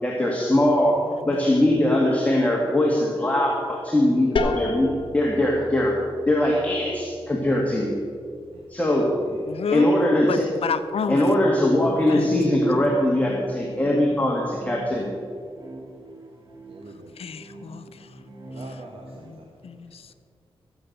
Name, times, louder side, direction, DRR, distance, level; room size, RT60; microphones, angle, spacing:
voice 1, 0.0-6.0 6.2-8.0 8.7-9.1 9.7-10.4 11.1-15.2, left 1 dB, 15° left, -2 dB, 1.9 m, -21 dB
sound 1, 4.4-9.9, left 3 dB, 60° left, 1.2 m, -33 dB
voice 2, 9.5-9.9 10.3-11.3 12.1-12.6 17.2-18.1 19.2-20.1, left 6 dB, 80° left, 11 dB, 0.7 m, -30 dB
sound 2, 11.3-19.3, right 1 dB, 35° right, 1.7 m, -40 dB
voice 3, 16.7-17.1 18.5-19.5, right 2 dB, 80° right, 0 dB, 1.4 m, -44 dB
14.5 x 8.0 x 6.6 m, 2.3 s
wide cardioid pair, 90°, 10 cm